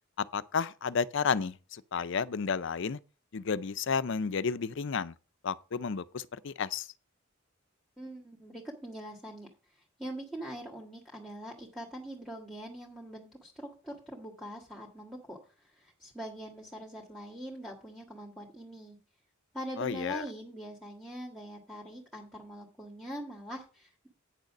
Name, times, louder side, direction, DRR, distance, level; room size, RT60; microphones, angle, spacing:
voice 1, 0.2-3.0 3.3-5.1 5.4-6.9 19.8-20.2, left 5 dB, 65° left, 0.5 m, -32 dB
voice 2, 8.0-19.0 19.5-24.1, equal, ahead, 1.7 m, -43 dB
9.1 x 6.6 x 6.0 m
head